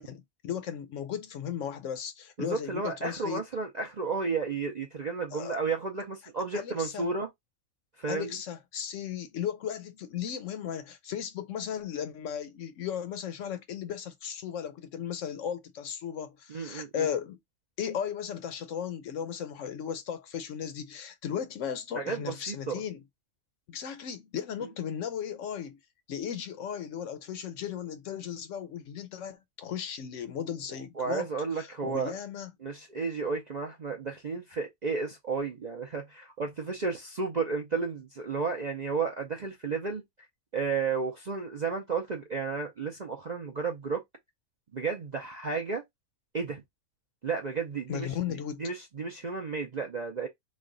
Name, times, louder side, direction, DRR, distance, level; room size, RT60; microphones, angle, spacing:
voice 1, 0.0-3.4 5.3-5.6 6.5-7.1 8.1-17.4 17.8-23.0 23.7-25.8 26.1-31.3 31.5-32.5 47.9-48.6, left 8 dB, 65° left, 0.9 m, -36 dB
voice 2, 2.4-7.3 8.0-8.4 16.5-17.1 21.9-22.8 30.7-32.1 32.6-40.0 40.5-44.0 44.7-45.8 46.3-46.6 47.2-48.1 48.6-50.3, right 4 dB, 50° right, 0.5 m, -32 dB
3.2 x 2.3 x 3.7 m
omnidirectional pair, 1.5 m